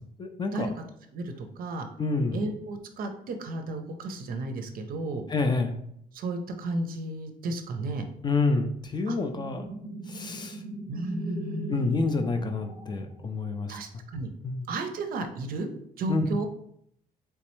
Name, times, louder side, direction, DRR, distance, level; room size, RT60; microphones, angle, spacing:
voice 1, 0.2-0.7 2.0-2.4 5.3-5.8 8.2-9.7 10.1-10.6 11.7-13.8 14.4-14.7 16.1-16.3, left 3 dB, 25° left, 5 dB, 0.3 m, -28 dB
voice 2, 1.1-1.9 2.3-5.2 6.1-8.1 9.1-9.2 10.9-12.0 13.7-14.3 14.7-15.7 16.0-16.5, right 2 dB, 60° right, 6 dB, 0.5 m, -33 dB
sound 1, 9.3-13.5, right 1 dB, 15° right, 0.6 m, -40 dB
3.3 x 3.1 x 3.0 m, 0.71 s
cardioid pair, 135°, 17 cm